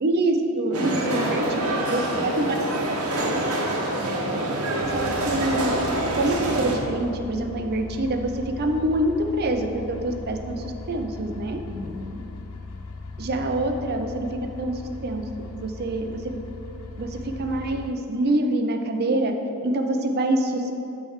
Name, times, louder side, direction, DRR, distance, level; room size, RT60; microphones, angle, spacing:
voice 1, 0.0-1.4 1.9-2.6 2.9-3.0 4.9-5.7 6.2-11.6 13.2-16.3 17.0-19.3 19.6-20.7, right 1 dB, 45° right, 5 dB, 0.5 m, -26 dB
voice 2, 0.7-2.5 4.0-4.4 11.7-12.2, left 2 dB, 20° right, -8 dB, 1.2 m, -36 dB
sound 1, 0.7-6.8, right 1 dB, 70° right, 1.0 m, -26 dB
sound 2, 4.8-17.9, left 3 dB, 70° left, 0.5 m, -38 dB
8.7 x 3.3 x 6.4 m, 2.8 s
head